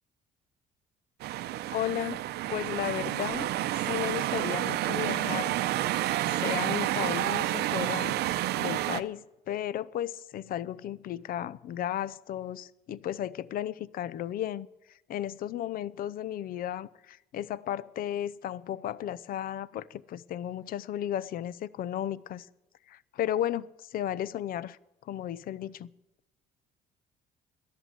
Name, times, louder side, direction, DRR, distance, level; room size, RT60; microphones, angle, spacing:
sound 1, 1.2-9.0, right 15 dB, 75° right, 0.6 m, -30 dB
voice 1, 1.7-2.2 2.5-3.5 3.9-5.5 6.3-8.2 8.6-22.5 22.9-25.9, left 11 dB, 60° left, 0.6 m, -34 dB
13.0 x 11.0 x 7.8 m
cardioid pair, 110°, 17 cm